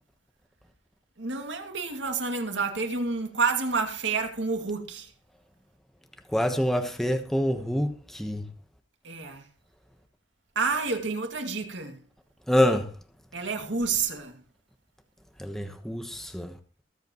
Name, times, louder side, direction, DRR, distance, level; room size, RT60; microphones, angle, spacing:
voice 1, 1.2-5.1 9.0-9.4 10.6-12.0 13.3-14.4, right 4 dB, 85° right, 2.4 m, -29 dB
voice 2, 6.3-8.4 12.5-12.9 15.4-16.5, equal, ahead, 1.2 m, -26 dB
23.0 x 8.0 x 3.1 m
head